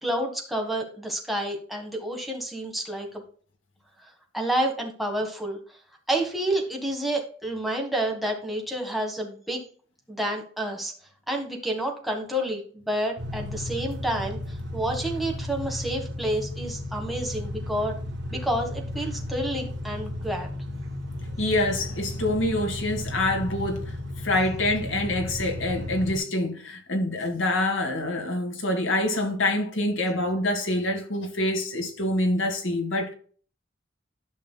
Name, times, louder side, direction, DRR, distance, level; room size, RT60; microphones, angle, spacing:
voice 1, 0.0-3.2 4.0-5.6 6.1-9.6 10.1-10.9 11.3-17.9 18.3-20.5, right 1 dB, ahead, 1.6 m, -29 dB
sound 1, 13.2-26.2, left 1 dB, 65° right, 1.3 m, -34 dB
voice 2, 21.4-23.9 24.2-33.1, left 1 dB, 85° left, 1.8 m, -26 dB
11.5 x 6.0 x 2.3 m
head